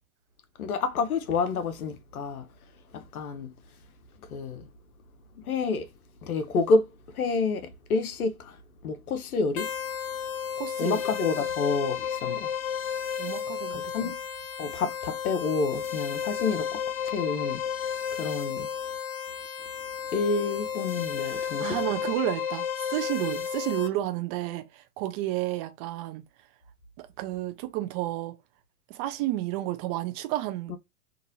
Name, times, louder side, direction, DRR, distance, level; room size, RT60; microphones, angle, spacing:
voice 1, 0.6-2.4 2.9-3.5 4.3-4.7 5.4-5.9 6.2-8.6 8.8-9.7 10.8-12.5 13.7-14.1 14.6-17.6 18.1-18.7 20.1-21.8 30.7-30.8, left 4 dB, 80° left, 0.7 m, -29 dB
sound 1, 9.6-23.9, left 8 dB, 45° left, 0.9 m, -32 dB
voice 2, 10.6-11.0 13.2-14.1 21.2-26.2 27.0-28.4 28.9-30.8, right 15 dB, 25° right, 0.4 m, -31 dB
2.9 x 2.5 x 2.6 m
hypercardioid pair, 100°, 43 cm